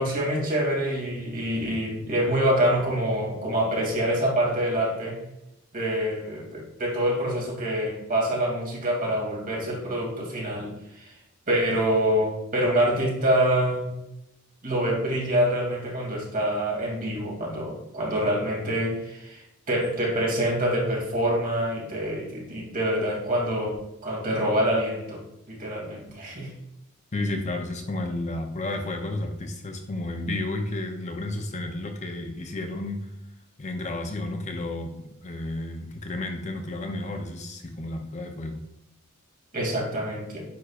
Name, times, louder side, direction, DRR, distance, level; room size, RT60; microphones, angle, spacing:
voice 1, 0.0-5.2 5.7-11.1 11.5-13.9 14.6-19.4 19.7-25.2 25.5-26.5 39.5-40.5, right 1 dB, 40° right, -3 dB, 2.7 m, -26 dB
voice 2, 27.1-33.1 33.6-38.6, left 2 dB, 35° left, 4 dB, 0.7 m, -32 dB
9.5 x 5.4 x 2.5 m, 0.88 s
head